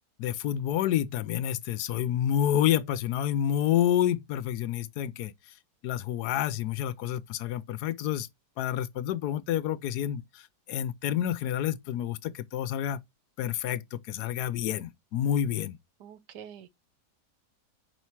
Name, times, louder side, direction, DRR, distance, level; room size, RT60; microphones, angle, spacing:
voice 1, 0.2-5.3 5.8-8.3 8.6-13.0 13.4-15.8, left 11 dB, 80° left, 1.1 m, -29 dB
voice 2, 16.0-16.7, right 8 dB, 85° right, 1.5 m, -46 dB
5.6 x 4.9 x 4.5 m
omnidirectional pair, 1.8 m